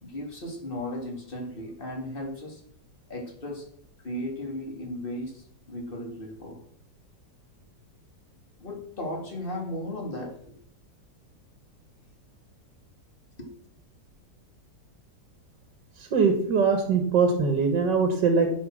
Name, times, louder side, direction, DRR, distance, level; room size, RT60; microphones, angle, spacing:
voice 1, 0.0-2.6 3.1-3.7 4.0-6.6 8.6-10.5 13.4-13.5, left 1 dB, 30° left, 0 dB, 2.7 m, -36 dB
voice 2, 16.0-18.5, right 5 dB, 80° right, 5 dB, 2.1 m, -22 dB
15.0 x 5.8 x 6.3 m, 0.68 s
omnidirectional pair, 1.9 m